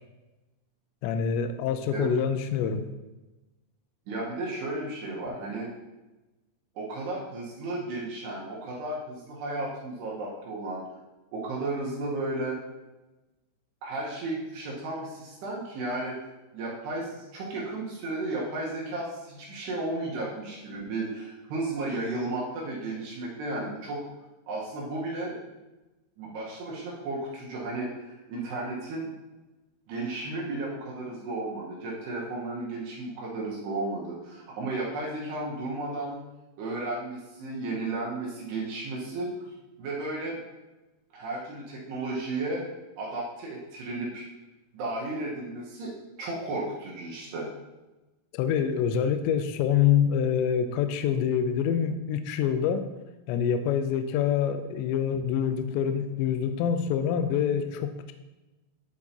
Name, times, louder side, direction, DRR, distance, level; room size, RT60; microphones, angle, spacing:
voice 1, 1.0-2.9 48.3-52.9 53.3-58.1, left 8 dB, 85° left, 9 dB, 2.5 m, -26 dB
voice 2, 4.1-5.7 6.8-10.8 11.3-12.6 13.8-16.2 16.5-24.0 24.5-25.3 26.2-29.1 29.9-36.2 36.6-39.5 39.8-40.4 41.1-42.6 43.0-44.2 44.7-45.9 46.2-47.5, right 2 dB, 70° right, -5 dB, 2.9 m, -33 dB
11.5 x 4.7 x 2.8 m, 1.1 s
omnidirectional pair, 5.6 m